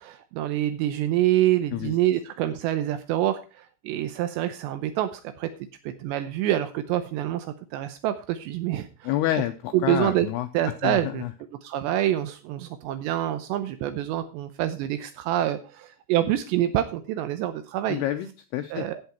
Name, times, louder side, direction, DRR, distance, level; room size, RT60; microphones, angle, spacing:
voice 1, 0.0-5.5 5.8-9.1 9.7-10.3 10.5-11.2 11.5-18.0 18.7-19.1, right 12 dB, 80° right, 10 dB, 2.7 m, -26 dB
voice 2, 9.0-10.5 10.8-11.3 17.9-18.8, left 13 dB, 85° left, 9 dB, 2.3 m, -28 dB
16.0 x 5.9 x 4.2 m, 0.34 s
omnidirectional pair, 5.3 m